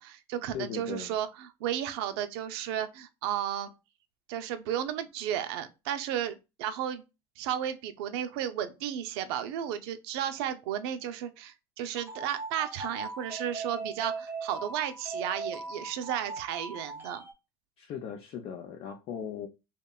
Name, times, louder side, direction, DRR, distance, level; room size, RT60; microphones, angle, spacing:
voice 1, 0.0-3.7 4.3-7.0 7.4-17.2, right 10 dB, 75° right, 0.4 m, -33 dB
voice 2, 0.5-1.2 17.8-19.5, left 8 dB, 50° left, 0.4 m, -38 dB
sound 1, 12.0-17.3, right 3 dB, 15° right, 0.5 m, -39 dB
2.8 x 2.1 x 2.3 m
supercardioid pair, 90°, 13 cm